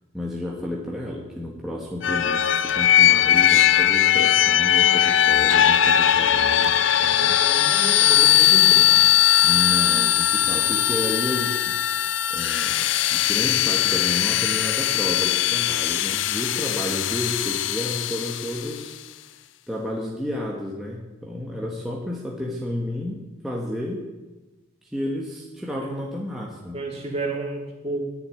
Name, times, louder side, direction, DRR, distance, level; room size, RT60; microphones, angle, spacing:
voice 1, 0.1-7.4 9.4-11.8 12.3-19.0 19.7-24.0 24.8-26.8, left 1 dB, ahead, -3 dB, 1.4 m, -31 dB
sound 1, 2.0-18.8, left 11 dB, 70° left, 0.5 m, -19 dB
voice 2, 7.2-9.0 26.7-28.0, right 2 dB, 30° right, -1 dB, 2.7 m, -31 dB
11.0 x 7.1 x 9.5 m, 1.1 s
head